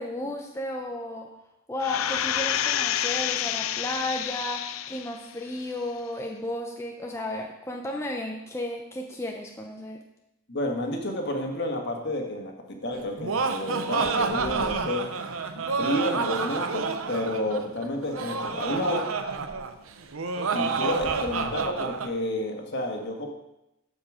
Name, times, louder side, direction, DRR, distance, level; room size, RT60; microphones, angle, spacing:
voice 1, 0.0-1.4 1.7-10.0, left 1 dB, 15° left, 1 dB, 0.7 m, -33 dB
sound 1, 1.8-5.2 5.7-5.8, left 10 dB, 80° left, 0.5 m, -28 dB
voice 2, 10.5-12.5 12.8-15.0 15.5-19.0 20.5-23.3, left 1 dB, 55° left, 2 dB, 1.7 m, -30 dB
Laughter, 12.9-22.1, right 4 dB, 85° right, 0.8 m, -29 dB
13.5 x 5.2 x 5.0 m, 0.89 s
head